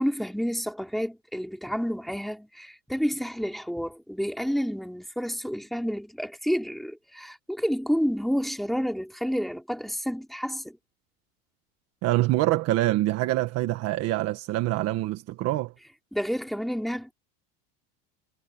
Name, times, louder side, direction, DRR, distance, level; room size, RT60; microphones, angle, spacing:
voice 1, 0.0-10.8 16.1-17.1, equal, ahead, 3.2 m, -29 dB
voice 2, 12.0-15.7, right 16 dB, 50° right, 1.5 m, -25 dB
supercardioid pair, 145°, 32 cm